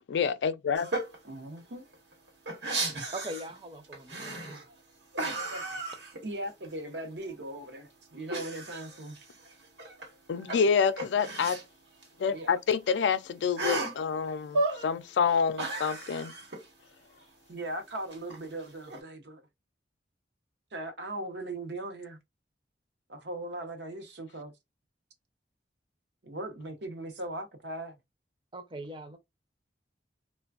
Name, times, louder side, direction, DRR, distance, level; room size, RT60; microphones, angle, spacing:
voice 1, 0.1-0.9 10.3-11.6 12.2-16.3, left 6 dB, 85° left, 0.3 m, -27 dB
sound 1, 0.8-1.2 1.6-1.7 1.9-3.6 3.9-4.7 5.1-6.7 7.0-7.1 8.3-10.1 10.4-11.6 12.0-12.1 12.4-12.5 13.6-14.0 14.5-14.9 15.2-16.7 18.1-19.0, right 2 dB, 90° right, 1.1 m, -34 dB
voice 2, 1.2-1.9 5.5-5.6 6.2-9.3 12.2-12.6 17.5-19.4 20.7-22.2 23.1-24.5 26.2-28.0, right 1 dB, 75° right, 0.7 m, -39 dB
voice 3, 3.1-4.6 28.5-29.2, right 1 dB, 30° right, 0.6 m, -41 dB
3.2 x 2.2 x 2.3 m
head